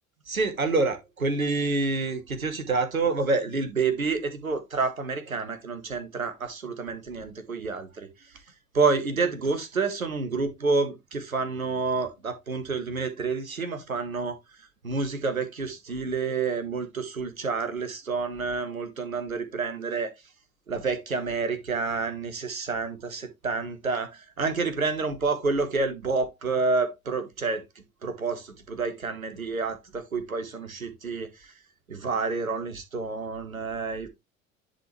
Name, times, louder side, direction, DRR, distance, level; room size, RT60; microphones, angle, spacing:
voice 1, 0.3-8.1 8.7-14.4 14.8-20.1 20.7-27.6 28.0-31.3 31.9-34.1, right 4 dB, 90° right, 1.3 m, -28 dB
10.0 x 4.2 x 3.1 m
figure-of-eight pair, 70°, 41 cm